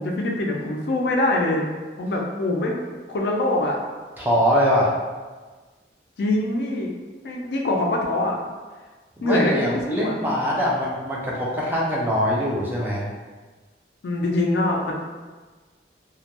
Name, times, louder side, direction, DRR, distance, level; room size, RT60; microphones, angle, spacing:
voice 1, 0.0-1.6 2.0-2.8 3.1-3.8 6.2-6.9 7.2-8.4 9.2-10.1 14.0-14.9, left 1 dB, 70° left, 0 dB, 0.4 m, -23 dB
voice 2, 4.2-4.9 9.2-13.1, equal, 10° right, -6 dB, 0.4 m, -23 dB
2.2 x 2.1 x 2.8 m, 1.3 s
head